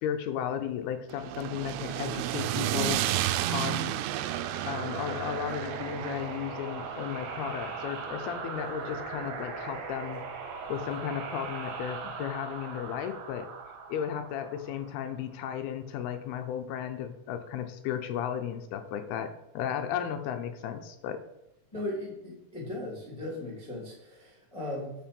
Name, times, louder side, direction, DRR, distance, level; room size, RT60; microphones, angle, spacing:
voice 1, 0.0-3.0 3.5-4.0 4.7-10.2 10.7-13.5 13.9-21.2, left 9 dB, 80° left, 8 dB, 2.5 m, -34 dB
sound 1, 1.1-9.3, right 14 dB, 85° right, 2.5 m, -33 dB
sound 2, 4.1-15.4, right 5 dB, 70° right, 2.4 m, -40 dB
voice 2, 21.7-24.9, left 1 dB, 15° left, -6 dB, 1.5 m, -37 dB
7.3 x 5.2 x 5.3 m, 0.88 s
omnidirectional pair, 4.8 m